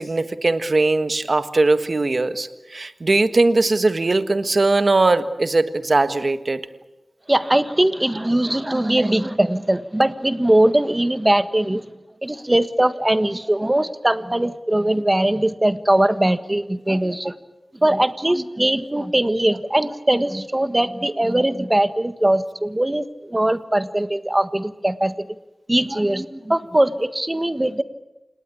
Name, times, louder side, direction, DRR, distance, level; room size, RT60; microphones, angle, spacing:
voice 1, 0.0-6.6, right 2 dB, 55° right, 10 dB, 1.5 m, -20 dB
voice 2, 7.3-11.9 12.2-17.4 17.8-25.3 25.7-27.8, right 1 dB, 20° right, 11 dB, 1.5 m, -20 dB
28.5 x 19.0 x 8.5 m, 1.0 s
wide cardioid pair, 60°, 0 cm